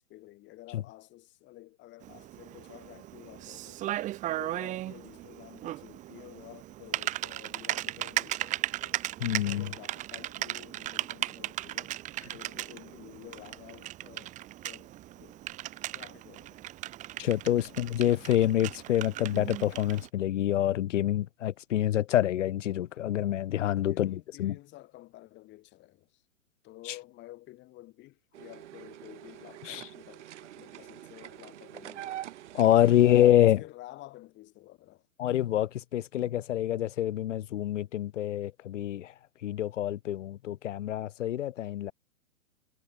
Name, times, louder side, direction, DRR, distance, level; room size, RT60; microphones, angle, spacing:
voice 1, 0.1-3.8 4.4-9.0 9.4-12.0 12.3-14.4 14.6-15.5 15.9-16.6 17.6-17.8 23.9-26.2 26.6-32.2 32.7-33.2 33.6-35.1, left 17 dB, 25° left, 3.0 m, -51 dB
Typing, 2.0-20.1, right 15 dB, 20° right, 0.8 m, -37 dB
voice 2, 9.2-9.7 17.2-24.6 29.7-29.8 32.5-33.6 35.2-39.1 39.4-41.9, left 12 dB, 65° left, 1.1 m, -26 dB
sound 1, 28.3-33.3, right 13 dB, 60° right, 2.0 m, -45 dB
hypercardioid pair, 130°, 41 cm